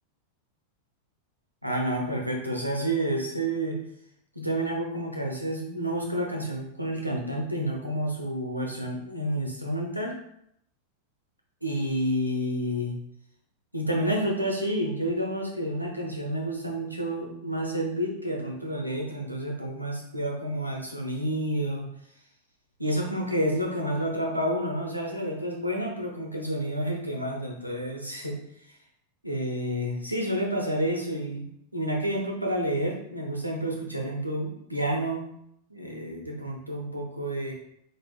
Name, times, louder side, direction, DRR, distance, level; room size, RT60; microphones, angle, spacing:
voice 1, 1.6-3.8 4.3-10.1 11.6-13.0 13.7-21.9 22.8-28.3 29.2-31.5 31.7-35.3 35.7-37.5, right 1 dB, 90° right, 0 dB, 0.7 m, -29 dB
4.2 x 3.4 x 2.2 m, 0.73 s
figure-of-eight pair, 90°, 0 cm